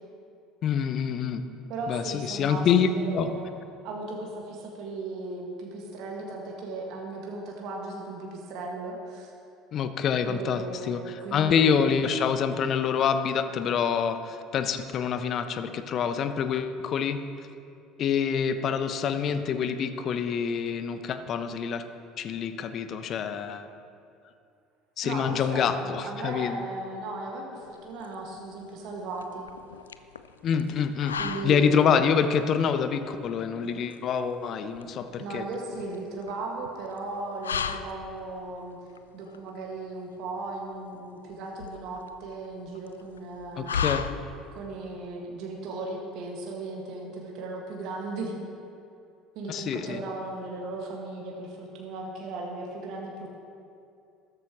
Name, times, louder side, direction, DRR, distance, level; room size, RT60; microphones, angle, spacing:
voice 1, 0.6-1.4 1.9-3.3 9.7-17.2 18.0-21.8 22.2-23.7 25.0-26.6 30.4-31.2 31.4-35.4 43.6-44.0 49.5-50.0, left 7 dB, 45° left, 10 dB, 0.8 m, -26 dB
voice 2, 1.7-3.5 3.8-9.3 10.2-12.0 25.0-29.5 31.2-32.1 35.2-38.8 39.1-43.9 44.5-48.4 49.3-53.3, right 2 dB, 55° right, -1 dB, 1.8 m, -36 dB
sound 1, 27.6-44.7, left 7 dB, 80° left, 0.4 m, -38 dB
14.5 x 13.5 x 3.1 m, 2.5 s
figure-of-eight pair, 60°, 0 cm